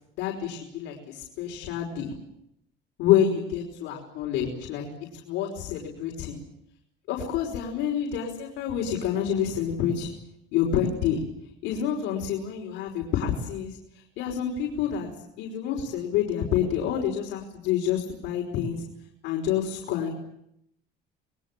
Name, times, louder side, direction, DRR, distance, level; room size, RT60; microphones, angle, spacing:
voice 1, 0.1-2.1 3.0-4.9 5.2-6.4 7.1-10.1 10.5-11.2 11.6-13.8 14.2-15.1 15.4-18.8 19.2-20.2, left 9 dB, 80° left, -1 dB, 5.3 m, -28 dB
27.5 x 22.0 x 7.5 m, 0.78 s
cardioid pair, 160°, 19 cm